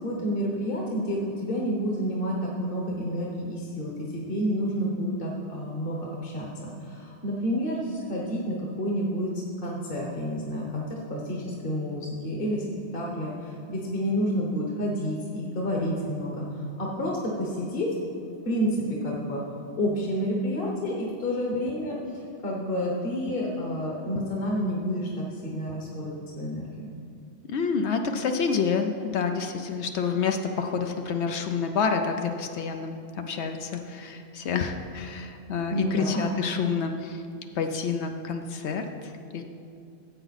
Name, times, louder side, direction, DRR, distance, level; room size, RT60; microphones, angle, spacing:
voice 1, 0.0-9.3 9.6-12.6 12.9-17.9 18.4-19.4 19.8-26.9 35.7-36.3, equal, 55° left, -3 dB, 1.3 m, -29 dB
voice 2, 27.5-37.2 37.6-39.4, left 5 dB, 75° left, 5 dB, 0.9 m, -28 dB
14.5 x 7.9 x 4.1 m, 2.5 s
omnidirectional pair, 1.1 m